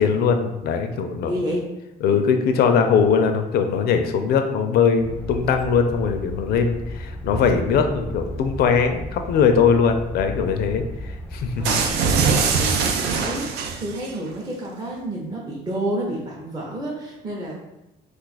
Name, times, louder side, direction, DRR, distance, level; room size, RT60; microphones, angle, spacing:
voice 1, 0.0-1.3 2.0-11.8, left 6 dB, 65° left, 6 dB, 0.5 m, -20 dB
voice 2, 1.2-1.6 2.1-2.2 11.6-17.6, right 1 dB, 25° right, -4 dB, 0.7 m, -30 dB
sound 1, 5.0-12.0, equal, 10° left, 0.4 m, -34 dB
sound 2, 11.6-14.1, right 5 dB, 80° right, 0.4 m, -22 dB
2.5 x 2.4 x 4.0 m, 0.93 s
cardioid pair, 110°, 17 cm